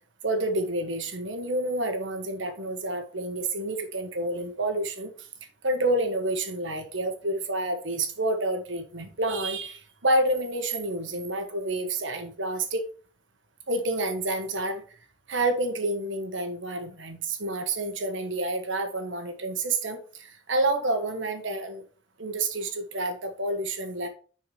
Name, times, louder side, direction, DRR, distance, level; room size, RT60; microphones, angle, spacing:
voice 1, 0.2-5.3 5.6-12.8 13.7-14.8 15.3-21.8 22.2-24.1, right 2 dB, 90° right, 6 dB, 1.4 m, -29 dB
9.6 x 4.6 x 3.3 m, 0.39 s
head